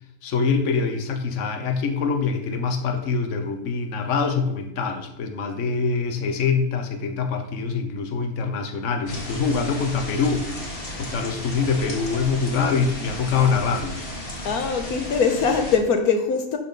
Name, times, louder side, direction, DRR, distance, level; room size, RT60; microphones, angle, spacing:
voice 1, 0.2-10.6 11.0-14.1, left 5 dB, 55° left, 6 dB, 1.3 m, -24 dB
sound 1, 9.1-15.8, left 1 dB, 40° left, 1.9 m, -34 dB
voice 2, 14.4-16.6, left 5 dB, 75° left, 5 dB, 1.4 m, -22 dB
12.0 x 4.3 x 5.2 m, 0.79 s
omnidirectional pair, 1.6 m